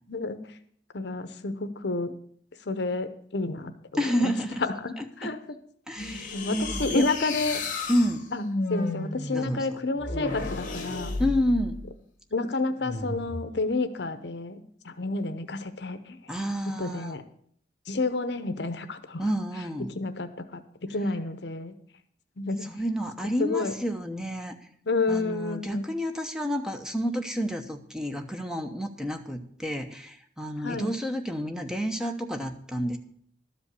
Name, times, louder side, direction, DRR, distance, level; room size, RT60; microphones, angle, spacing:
voice 1, 0.1-0.4 0.9-2.1 2.7-3.7 4.2-4.3 4.6-5.4 6.3-7.6 8.3-8.4 8.7-11.1 12.3-16.2 16.8-17.2 17.9-19.2 19.9-21.7 22.4-22.6 23.4-23.7 24.9-25.8 30.6-30.9, left 3 dB, 65° left, 10 dB, 0.8 m, -30 dB
voice 2, 3.9-4.6 5.0-5.3 5.9-7.1 7.9-8.3 9.3-9.8 11.2-11.8 16.3-17.2 19.2-19.9 22.6-24.6 25.1-33.0, equal, 5° right, 5 dB, 0.9 m, -30 dB
sound 1, 6.0-11.9 12.8-13.5, left 2 dB, 45° left, 1.9 m, -33 dB
12.5 x 5.2 x 8.3 m, 0.63 s
head